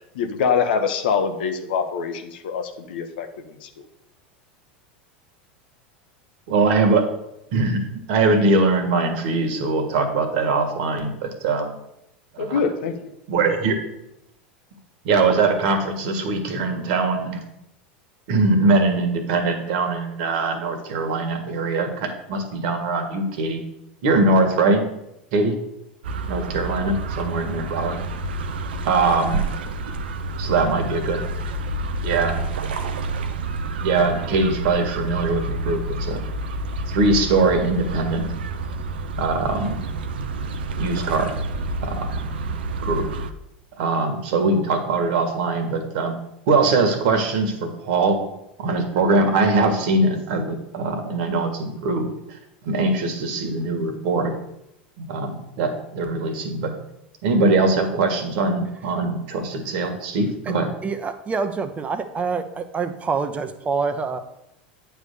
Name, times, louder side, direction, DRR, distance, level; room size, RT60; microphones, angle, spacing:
voice 1, 0.1-3.8 12.4-13.1, left 6 dB, 70° left, 7 dB, 1.0 m, -24 dB
voice 2, 6.5-7.1 7.5-11.7 12.3-12.6 13.3-13.8 15.0-17.4 18.3-23.6 24.0-24.9 25.3-25.6 26.3-28.0 28.8-29.4 30.4-31.2 32.0-32.3 33.8-36.2 36.9-38.3 39.2-39.8 40.8-41.4 41.8-42.3 42.8-43.1 43.8-46.1 46.5-48.2 48.6-52.1 52.6-54.3 55.0-56.7 57.2-60.7, right 3 dB, 60° right, 5 dB, 1.6 m, -22 dB
sound 1, 26.0-43.3, right 2 dB, 80° right, 0.6 m, -29 dB
voice 3, 60.8-64.2, right 5 dB, 25° right, 9 dB, 0.9 m, -26 dB
8.8 x 3.5 x 6.7 m, 0.82 s
hypercardioid pair, 90°, 5 cm